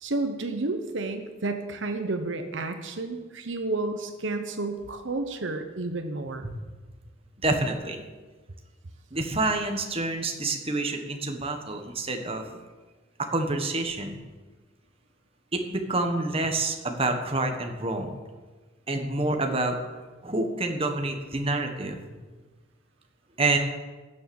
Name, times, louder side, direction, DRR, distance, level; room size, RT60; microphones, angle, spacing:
voice 1, 0.0-6.5, right 2 dB, 65° right, 7 dB, 1.0 m, -31 dB
voice 2, 7.4-8.0 9.1-12.6 13.2-14.2 15.5-18.1 18.9-19.8 20.2-22.0 23.4-23.6, right 2 dB, 30° right, 4 dB, 1.5 m, -27 dB
18.0 x 7.3 x 7.2 m, 1.3 s
head